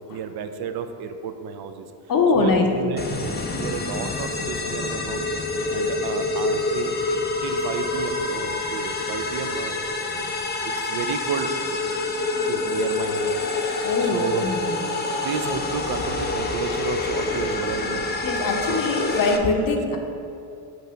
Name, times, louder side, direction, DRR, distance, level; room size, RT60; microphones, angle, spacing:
voice 1, 0.1-1.9 2.3-5.3 5.7-7.0 7.4-10.3 10.6-11.5 11.8-11.9 12.4-13.4 13.6-14.4 15.2-18.1 18.7-18.8 19.6-19.8, right 6 dB, 50° right, 8 dB, 0.6 m, -32 dB
voice 2, 2.1-2.7 13.8-14.8 18.2-20.0, left 4 dB, 40° left, 3 dB, 0.9 m, -22 dB
sound 1, 3.0-19.4, left 3 dB, 20° left, 0.5 m, -27 dB
6.3 x 2.7 x 5.6 m, 2.6 s
supercardioid pair, 65°, 50 cm